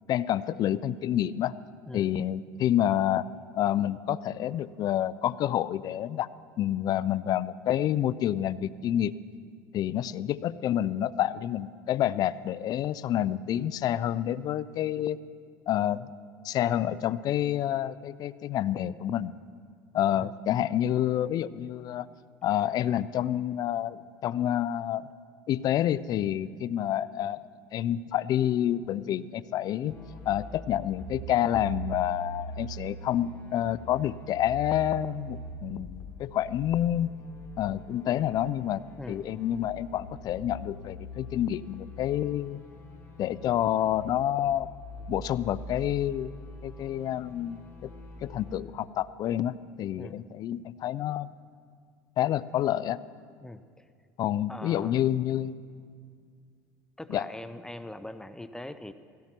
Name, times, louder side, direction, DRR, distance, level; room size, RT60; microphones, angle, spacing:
voice 1, 0.1-1.5 1.9-3.3 3.6-6.3 6.6-9.1 9.7-15.2 15.7-16.1 16.4-19.3 19.9-22.1 22.4-25.1 25.5-27.4 27.7-30.0 30.3-37.2 37.6-38.8 39.1-42.6 43.2-44.7 45.1-46.3 46.6-47.9 48.2-51.3 52.2-53.0 54.2-55.6 57.1-57.2, left 11 dB, 50° left, 18 dB, 0.5 m, -28 dB
sound 1, 29.9-48.6, equal, 30° left, 3.4 m, -43 dB
voice 2, 39.0-39.3 50.0-50.2 53.4-53.8 54.5-55.0 57.0-58.9, left 1 dB, 5° left, 12 dB, 0.6 m, -41 dB
17.0 x 16.5 x 4.5 m, 2.1 s
supercardioid pair, 100°, 9 cm